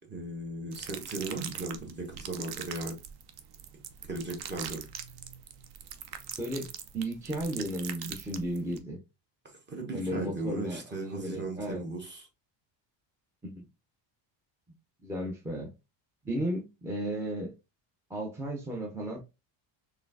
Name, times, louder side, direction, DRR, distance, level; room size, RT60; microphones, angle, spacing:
voice 1, 0.1-3.0 4.1-4.8 9.4-12.3, right 2 dB, 20° right, 1.2 m, -37 dB
sound 1, 0.7-8.8, right 9 dB, 55° right, 0.6 m, -42 dB
voice 2, 6.4-9.0 9.9-11.8 13.4-13.6 15.0-15.7 16.2-17.5 18.1-19.2, right 1 dB, 5° right, 0.6 m, -34 dB
4.2 x 3.4 x 2.6 m
cardioid pair, 165°, 48 cm